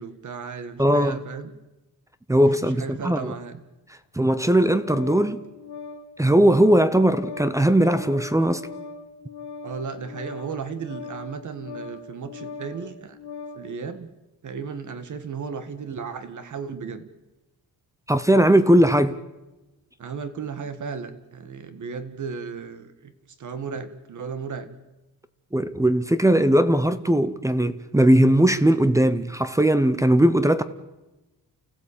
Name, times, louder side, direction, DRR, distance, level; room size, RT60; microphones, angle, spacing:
voice 1, 0.0-1.5 2.7-3.6 9.6-13.2 13.5-14.1 14.4-17.0 20.0-23.1 23.4-24.7, right 5 dB, 50° right, 1.8 m, -35 dB
voice 2, 0.8-1.2 2.3-3.3 4.1-5.4 6.2-8.7 18.1-19.2 25.5-30.6, right 1 dB, 10° right, 0.7 m, -19 dB
Organ, 4.3-13.7, left 4 dB, 85° left, 2.1 m, -40 dB
29.5 x 15.5 x 8.6 m
wide cardioid pair, 175°, 39 cm